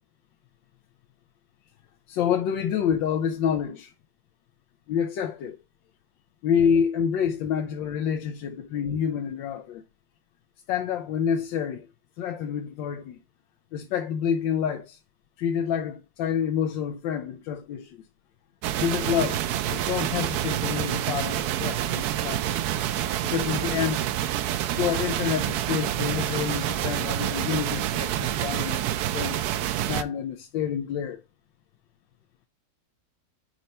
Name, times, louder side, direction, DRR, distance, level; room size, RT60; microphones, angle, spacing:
voice 1, 2.1-3.9 4.9-5.6 6.4-9.8 10.7-11.9 12.2-13.2 13.7-15.0 15.4-18.0 18.8-19.4 19.7-22.6 23.2-24.1 24.8-29.4 29.9-31.2, left 8 dB, 85° left, 1.4 m, -28 dB
sound 1, 18.6-30.0, right 12 dB, 70° right, 0.9 m, -27 dB
5.2 x 4.4 x 4.2 m
omnidirectional pair, 2.0 m